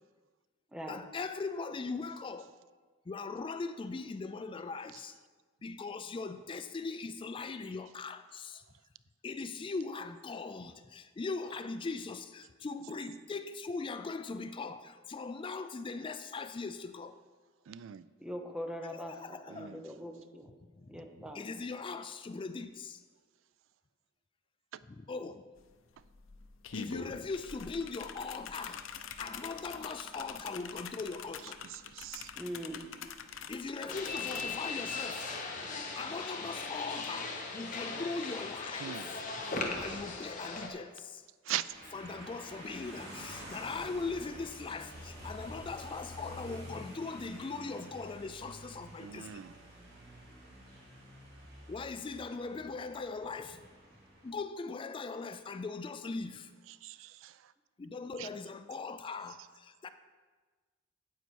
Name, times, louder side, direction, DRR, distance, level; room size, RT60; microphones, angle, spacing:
voice 1, 0.9-2.5 3.1-5.2 5.6-8.6 9.2-17.2 18.9-19.8 20.4-23.0 24.9-25.4 26.7-31.6 33.5-35.3 35.7-39.2 39.8-41.2 41.9-49.5 51.7-53.6 54.2-56.5 57.8-59.9, left 4 dB, 25° left, 10 dB, 0.3 m, -40 dB
voice 2, 17.7-18.0 19.5-19.8 31.6-32.3 38.8-39.1 41.5-41.6 49.0-49.5 56.8-57.4 58.2-58.3, right 12 dB, 80° right, 16 dB, 0.3 m, -40 dB
voice 3, 18.2-19.2 19.5-20.5 20.9-21.4 32.4-32.9 33.8-33.9 39.7-39.9, equal, 5° right, 4 dB, 0.9 m, -42 dB
sound 1, 25.6-25.7 26.0-34.5, left 6 dB, 80° left, 0.6 m, -45 dB
sound 2, 33.9-40.7, left 3 dB, 40° left, 1.3 m, -38 dB
sound 3, 41.7-54.3, equal, 55° right, 3.0 m, -49 dB
9.2 x 8.2 x 4.6 m, 1.4 s
head